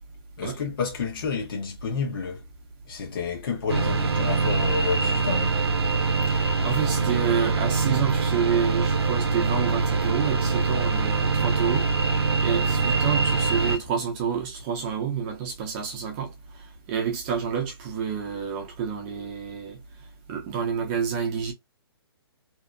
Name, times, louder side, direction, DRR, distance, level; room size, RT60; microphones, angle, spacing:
voice 1, 0.4-2.4 2.9-5.6, left 5 dB, 60° left, 1.0 m, -30 dB
sound 1, 3.7-13.8, right 4 dB, 80° right, 0.6 m, -24 dB
voice 2, 6.3-11.9 12.4-19.8 20.3-21.5, right 7 dB, 25° right, 0.7 m, -29 dB
2.7 x 2.1 x 2.5 m
hypercardioid pair, 145°, 13 cm